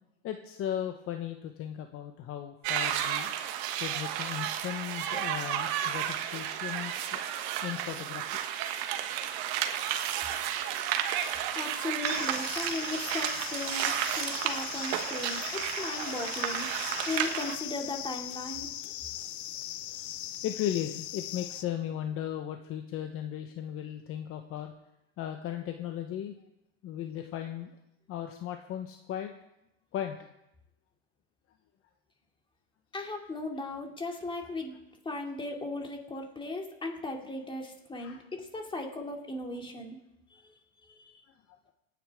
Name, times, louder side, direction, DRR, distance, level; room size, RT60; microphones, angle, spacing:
voice 1, 0.2-3.3 3.8-7.2 7.6-8.3 10.1-10.2 10.5-11.5 20.4-24.7 25.2-26.3 26.8-27.7 28.1-29.3 29.9-30.2 37.9-38.2, left 10 dB, 45° left, 6 dB, 1.1 m, -36 dB
sound 1, 2.6-17.6, right 10 dB, 60° right, 1.3 m, -32 dB
voice 2, 11.5-16.7 17.1-19.0 32.9-40.0 40.3-40.4 40.9-41.2, left 2 dB, 15° left, 2 dB, 2.8 m, -37 dB
sound 2, 12.0-21.6, left 12 dB, 85° left, 0.9 m, -39 dB
25.5 x 9.8 x 3.7 m, 0.86 s
supercardioid pair, 110°, 32 cm